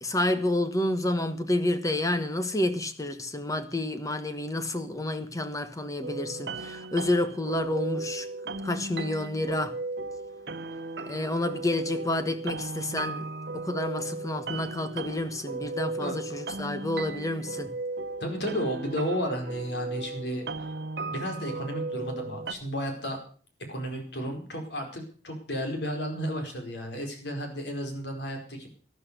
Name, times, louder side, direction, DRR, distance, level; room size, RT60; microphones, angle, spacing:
voice 1, 0.0-8.3 8.6-9.7 11.1-13.3 13.5-17.7, left 1 dB, 20° left, 1.4 m, -29 dB
sound 1, 6.0-22.5, right 3 dB, 65° right, 1.2 m, -36 dB
voice 2, 18.2-20.4 21.1-23.2 23.7-28.7, equal, 75° left, 4.7 m, -33 dB
12.5 x 12.5 x 6.7 m
head